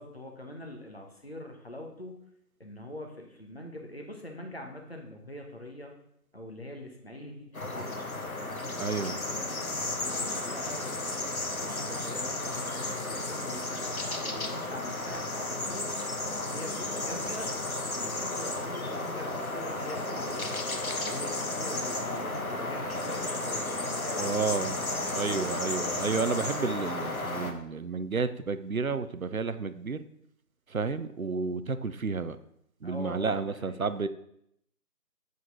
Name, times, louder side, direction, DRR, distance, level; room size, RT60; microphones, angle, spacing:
voice 1, 0.0-2.2 2.6-5.9 6.3-8.1 8.8-11.3 11.6-15.9 16.5-20.6 21.0-24.8 32.8-33.9, left 1 dB, 40° left, 2 dB, 0.9 m, -43 dB
sound 1, 7.5-27.5, left 2 dB, 60° left, 1.2 m, -33 dB
voice 2, 8.8-9.2 24.2-24.8 25.1-30.1 30.7-32.4 32.8-34.1, right 4 dB, 60° right, 12 dB, 0.6 m, -31 dB
7.9 x 5.1 x 4.0 m, 0.74 s
figure-of-eight pair, 180°, 47 cm